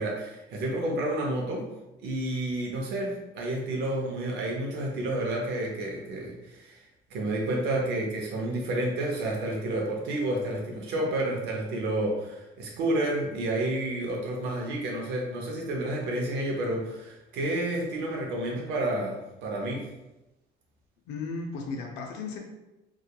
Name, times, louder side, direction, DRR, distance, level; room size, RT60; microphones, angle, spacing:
voice 1, 0.0-1.6 2.0-6.8 7.1-19.9, right 1 dB, 80° right, -1 dB, 0.6 m, -30 dB
voice 2, 21.1-22.4, left 4 dB, 85° left, 1 dB, 0.4 m, -35 dB
2.8 x 2.3 x 2.2 m, 0.98 s
cardioid pair, 110°, 17 cm